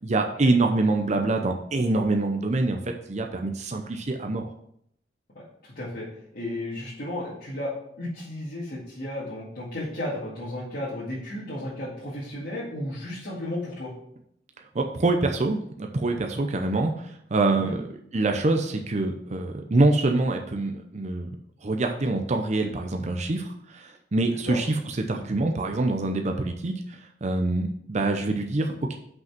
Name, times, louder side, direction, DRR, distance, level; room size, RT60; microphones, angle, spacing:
voice 1, 0.0-4.5 14.7-17.8 18.1-21.4 21.6-29.0, right 2 dB, 40° right, 4 dB, 0.6 m, -25 dB
voice 2, 5.6-6.1 6.3-7.7 8.0-13.9 17.5-17.7 24.5-24.6, left 1 dB, 55° left, -9 dB, 2.2 m, -33 dB
6.0 x 5.3 x 5.9 m, 0.71 s
head